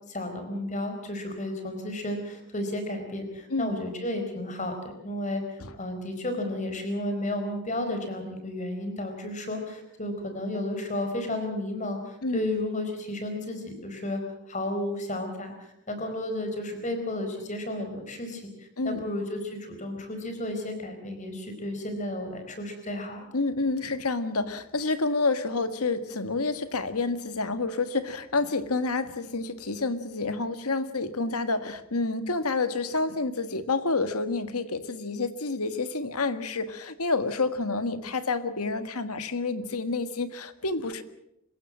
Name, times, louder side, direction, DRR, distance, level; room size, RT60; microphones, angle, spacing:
voice 1, 0.1-14.2 14.5-23.2, left 1 dB, 35° left, 6 dB, 4.6 m, -33 dB
voice 2, 23.3-41.0, left 3 dB, 85° left, 10 dB, 1.7 m, -29 dB
26.5 x 16.0 x 7.6 m, 0.83 s
head